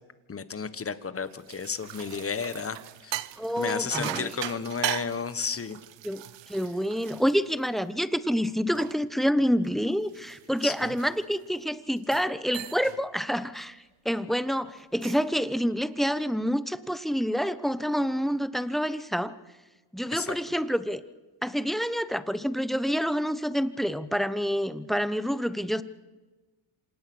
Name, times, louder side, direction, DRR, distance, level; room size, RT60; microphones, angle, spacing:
voice 1, 0.3-3.1 3.6-5.8 10.6-10.9 20.1-20.4, left 5 dB, 25° left, 13 dB, 1.4 m, -32 dB
sound 1, 1.2-8.0 8.4-11.5 12.0-12.3 12.5-13.0 13.4-13.6 14.8-15.3, right 14 dB, 60° right, 1.0 m, -39 dB
voice 2, 3.4-4.3 6.0-19.3 19.9-21.0 21.4-25.8, equal, ahead, 14 dB, 1.0 m, -28 dB
26.5 x 18.0 x 6.3 m, 1.2 s
cardioid pair, 95°, 49 cm